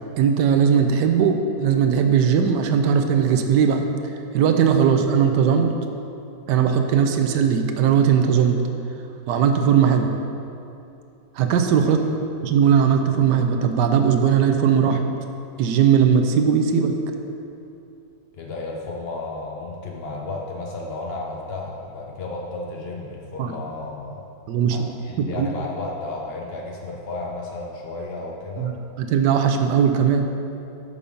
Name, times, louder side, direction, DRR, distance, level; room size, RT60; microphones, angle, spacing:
voice 1, 0.2-3.8 4.3-5.7 6.5-8.6 9.3-10.1 11.4-12.0 12.4-15.0 15.6-17.0 23.4-23.5 24.5-24.8 25.2-25.5 28.6-28.7 29.0-30.3, right 7 dB, 75° right, 5 dB, 1.2 m, -18 dB
voice 2, 18.3-24.2 24.7-28.7, left 2 dB, 90° left, -1 dB, 0.5 m, -33 dB
6.9 x 5.3 x 5.0 m, 2.7 s
omnidirectional pair, 1.9 m